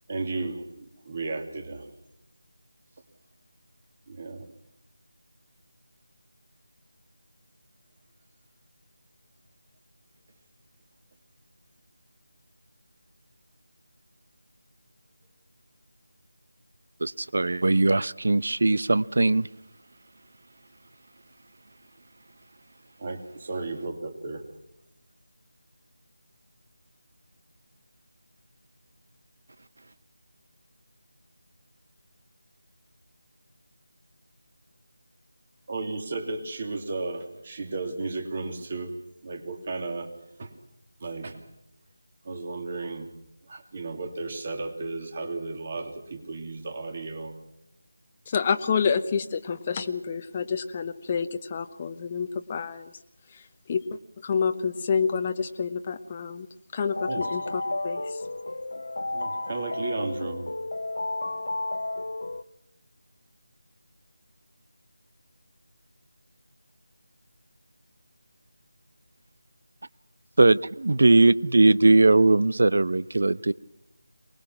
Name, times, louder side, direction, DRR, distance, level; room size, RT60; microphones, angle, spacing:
voice 1, 0.1-1.9 4.1-4.5 23.0-24.4 35.7-39.0 39.2-40.1 40.4-40.5 41.0-41.4 42.2-43.1 43.5-47.4 57.1-57.3 59.1-60.5, right 3 dB, 35° right, 2.8 m, -34 dB
voice 2, 17.0-19.5 70.4-73.5, right 2 dB, 55° right, 0.7 m, -20 dB
voice 3, 48.3-52.9 53.3-53.4 53.7-56.5 56.7-58.2, left 6 dB, 25° left, 0.9 m, -28 dB
sound 1, 56.8-62.4, left 2 dB, 60° left, 0.9 m, -32 dB
24.0 x 20.5 x 6.1 m
figure-of-eight pair, 160°, 0 cm